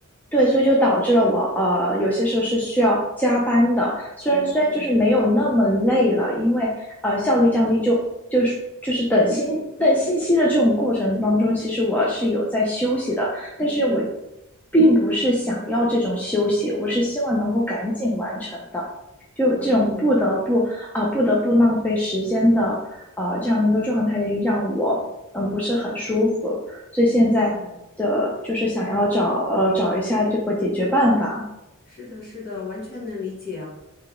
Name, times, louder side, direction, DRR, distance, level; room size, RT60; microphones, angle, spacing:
voice 1, 0.3-8.0 8.3-8.5 8.8-14.0 14.7-18.8 19.4-25.0 25.3-27.5 28.0-31.4, equal, 5° left, -5 dB, 0.5 m, -21 dB
voice 2, 4.3-5.3 13.6-14.1 19.4-20.2 27.2-27.8 31.9-33.7, left 4 dB, 45° left, -5 dB, 1.6 m, -36 dB
4.0 x 3.2 x 3.6 m, 0.88 s
head